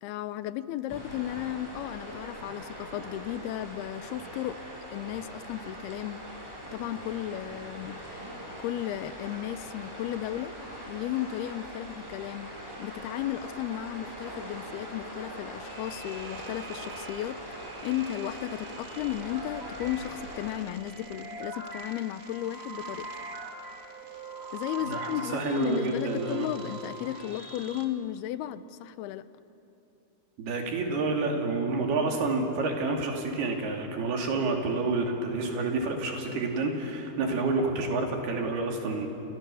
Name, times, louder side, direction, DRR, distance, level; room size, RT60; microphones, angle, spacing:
voice 1, 0.0-4.6 4.9-6.2 6.7-8.3 8.6-10.5 10.9-12.5 12.8-23.1 24.5-29.2, left 12 dB, 85° left, 14 dB, 2.7 m, -34 dB
sound 1, 0.9-20.5, equal, 5° right, 7.9 m, -42 dB
sound 2, 15.6-27.9, right 2 dB, 35° right, 0.9 m, -43 dB
voice 2, 24.8-26.5 30.4-39.1, right 3 dB, 80° right, 2 dB, 4.7 m, -29 dB
29.5 x 28.0 x 7.0 m, 2.9 s
omnidirectional pair, 4.5 m